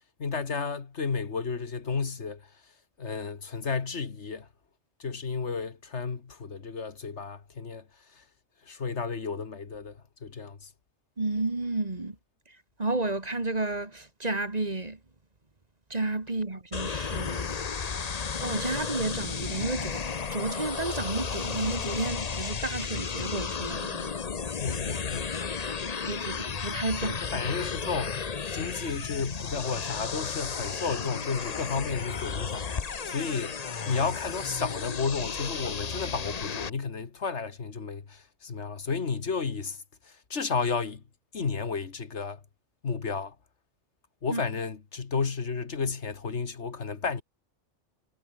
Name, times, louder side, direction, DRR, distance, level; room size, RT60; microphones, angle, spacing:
voice 1, 0.0-2.4 3.0-4.5 5.0-7.8 8.2-8.3 8.7-10.7 24.6-25.3 27.0-28.2 28.4-33.6 33.9-41.0 41.3-42.4 42.8-43.4 44.2-47.2, left 5 dB, 70° left, 2.0 m, -32 dB
voice 2, 11.2-12.2 12.8-15.0 15.9-17.6 18.4-24.2 26.1-27.4 44.3-44.4, right 2 dB, 35° right, 2.2 m, -32 dB
sound 1, 16.7-36.7, left 5 dB, 35° left, 0.9 m, -33 dB
omnidirectional pair, 1.2 m